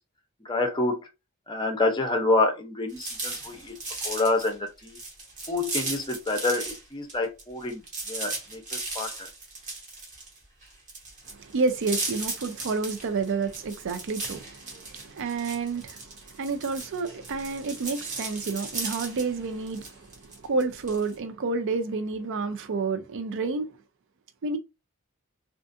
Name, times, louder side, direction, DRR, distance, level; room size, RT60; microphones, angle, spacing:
voice 1, 0.4-1.0 1.5-3.8 4.0-5.0 5.5-7.8 8.1-9.3, left 2 dB, 20° left, 0.6 m, -27 dB
sound 1, 2.9-6.8 7.1-21.1, right 3 dB, 35° right, 0.9 m, -37 dB
voice 2, 11.3-23.7 24.4-24.6, right 4 dB, 60° right, 0.4 m, -30 dB
2.5 x 2.4 x 2.5 m
head